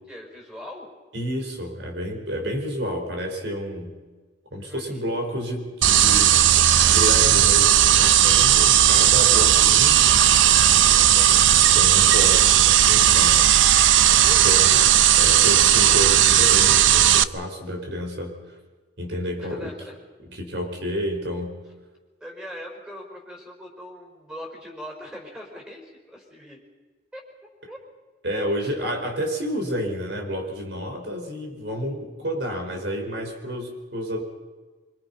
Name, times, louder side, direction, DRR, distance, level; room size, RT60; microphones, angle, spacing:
voice 1, 0.1-0.9 4.6-5.0 10.9-11.4 14.2-14.9 19.4-20.0 22.2-26.6 27.1-27.2 27.7-27.8 28.6-28.7, equal, 5° right, 1 dB, 5.3 m, -41 dB
voice 2, 1.1-3.9 4.5-6.4 6.9-10.0 11.0-11.1 11.7-13.5 14.4-14.6 15.2-18.4 19.0-19.7 20.2-21.6 28.2-34.2, equal, 65° right, 2 dB, 4.8 m, -30 dB
sound 1, 5.8-17.2, right 11 dB, 85° right, 0.6 m, -16 dB
25.5 x 25.0 x 5.5 m, 1.3 s
head